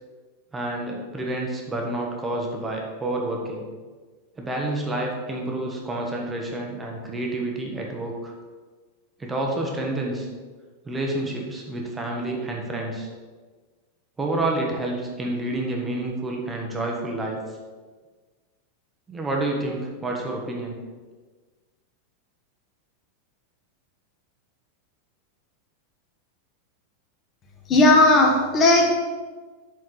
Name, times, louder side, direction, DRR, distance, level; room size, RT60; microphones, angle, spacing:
voice 1, 0.5-3.7 4.4-8.3 9.2-10.3 10.8-13.1 14.2-17.4 19.1-20.7, right 2 dB, 10° right, 0 dB, 1.1 m, -29 dB
voice 2, 27.7-28.9, left 2 dB, 20° left, 0 dB, 1.3 m, -16 dB
8.3 x 4.3 x 6.6 m, 1.4 s
supercardioid pair, 180°, 0 cm